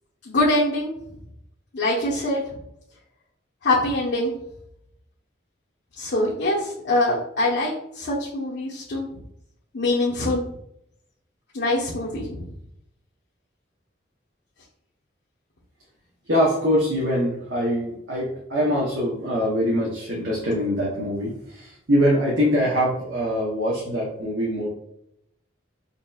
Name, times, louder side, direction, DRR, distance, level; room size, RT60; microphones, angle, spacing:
voice 1, 0.3-0.9 1.7-2.4 3.6-4.3 6.0-9.1 9.7-10.4 11.5-12.5, left 1 dB, 65° left, -7 dB, 0.9 m, -23 dB
voice 2, 16.3-24.7, equal, 70° right, -5 dB, 0.9 m, -23 dB
5.3 x 2.8 x 2.3 m, 0.76 s
head